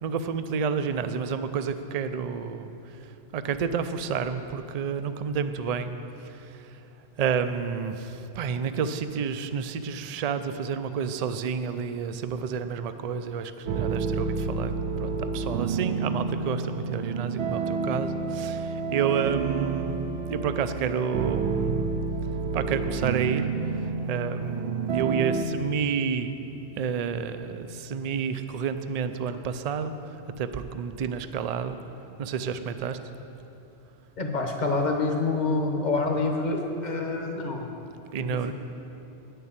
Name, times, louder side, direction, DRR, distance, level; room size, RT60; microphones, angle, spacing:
voice 1, 0.0-6.7 7.2-14.7 15.0-20.0 20.2-21.9 22.5-23.4 24.1-26.4 26.8-31.8 32.2-33.0 38.1-38.5, right 6 dB, 50° right, 10 dB, 0.5 m, -30 dB
sound 1, 13.6-25.5, right 4 dB, 85° right, 1.0 m, -29 dB
voice 2, 34.2-37.7 38.2-38.5, left 3 dB, 40° left, 3 dB, 1.2 m, -27 dB
9.6 x 6.9 x 8.7 m, 2.9 s
omnidirectional pair, 1.2 m